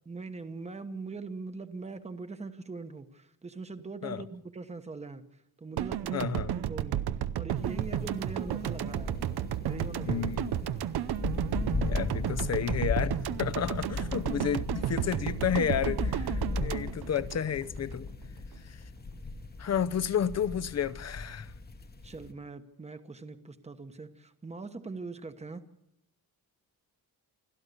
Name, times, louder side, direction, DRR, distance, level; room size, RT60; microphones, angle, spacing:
voice 1, 0.1-7.0 7.4-9.2 9.6-10.3 14.4-14.6 22.0-25.7, right 4 dB, 15° right, 1.1 m, -41 dB
sound 1, 5.8-18.0, right 11 dB, 90° right, 0.8 m, -33 dB
voice 2, 6.1-6.5 10.1-10.7 11.8-18.1 18.6-18.8 19.6-21.5, left 8 dB, 45° left, 0.7 m, -31 dB
sound 2, 7.6-22.3, left 3 dB, 25° left, 1.1 m, -37 dB
29.0 x 13.5 x 6.8 m
wide cardioid pair, 180°, 38 cm